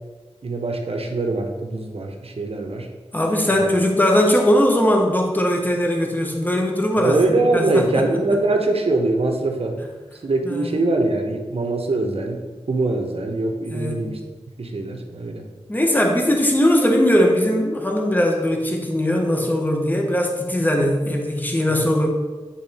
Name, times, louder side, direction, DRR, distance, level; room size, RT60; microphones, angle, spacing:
voice 1, 0.4-2.9 3.5-3.6 7.0-9.8 10.2-14.2 14.6-15.4 21.7-21.8, right 2 dB, 65° right, 3 dB, 1.0 m, -23 dB
voice 2, 3.1-8.2 10.4-10.7 13.7-14.0 15.7-22.1, equal, 15° left, 1 dB, 1.1 m, -20 dB
8.7 x 3.6 x 4.3 m, 1.3 s
wide cardioid pair, 55°, 11 cm